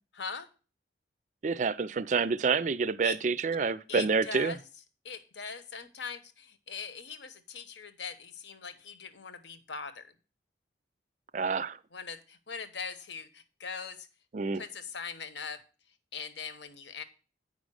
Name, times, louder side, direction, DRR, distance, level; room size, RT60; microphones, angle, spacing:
voice 1, 0.1-0.5 3.0-3.2 3.9-4.7 5.0-10.1 11.9-14.1 14.5-15.6 16.1-17.0, left 5 dB, 80° left, 1.1 m, -41 dB
voice 2, 1.4-4.5 11.3-11.8 14.3-14.6, right 5 dB, 40° right, 0.4 m, -28 dB
8.7 x 5.2 x 6.3 m
head